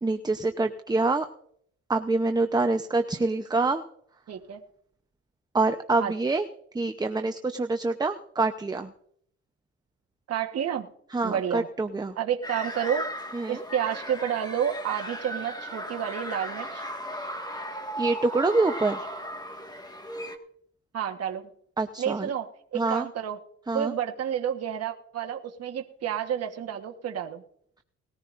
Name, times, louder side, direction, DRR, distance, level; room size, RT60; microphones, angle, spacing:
voice 1, 0.0-1.3 1.9-3.8 5.5-6.5 6.7-8.9 11.1-12.2 13.3-13.6 18.0-19.1 21.8-22.3 22.7-23.1 23.7-23.9, right 3 dB, 15° right, 7 dB, 0.8 m, -26 dB
voice 2, 4.3-4.6 6.0-6.1 10.3-10.9 11.2-11.7 12.2-13.1 13.5-16.8 20.9-21.5 22.0-23.4 23.7-27.4, right 9 dB, 55° right, 3 dB, 1.3 m, -30 dB
sound 1, 12.4-20.4, equal, 15° left, 1.7 m, -36 dB
19.5 x 14.0 x 2.6 m, 0.67 s
cardioid pair, 90°, 30 cm